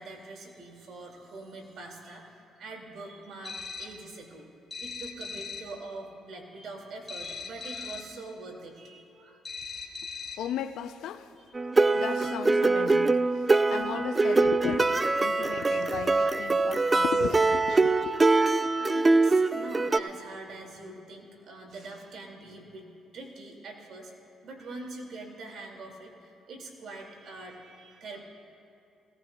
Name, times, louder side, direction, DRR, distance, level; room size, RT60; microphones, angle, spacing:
voice 1, 0.0-4.5 4.8-9.4 11.3-11.4 11.9-12.1 15.4-15.9 17.9-18.2 18.8-24.1 24.4-28.2, right 2 dB, 65° right, 2.3 m, -44 dB
sound 1, 3.4-4.1 4.7-5.8 7.1-8.2 9.4-10.6, left 4 dB, 30° left, 1.1 m, -40 dB
voice 2, 10.4-11.3 11.9-18.1, left 10 dB, 75° left, 0.5 m, -36 dB
sound 2, 11.5-20.0, right 3 dB, 25° right, 0.4 m, -23 dB
20.5 x 17.5 x 2.3 m
cardioid pair, 80°, 0 cm